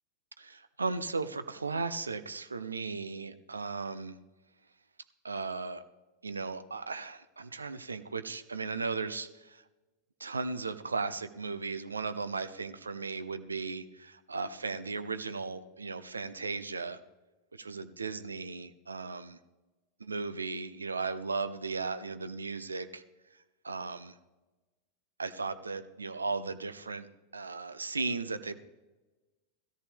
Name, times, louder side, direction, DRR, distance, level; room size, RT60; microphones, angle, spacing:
voice 1, 0.4-4.2 5.2-5.8 6.2-9.6 10.2-17.0 17.5-19.4 20.0-23.0 23.6-24.2 25.2-27.1 27.3-28.6, right 4 dB, 75° right, 12 dB, 0.5 m, -36 dB
16.5 x 14.0 x 3.5 m, 1.1 s
figure-of-eight pair, 90°, 0 cm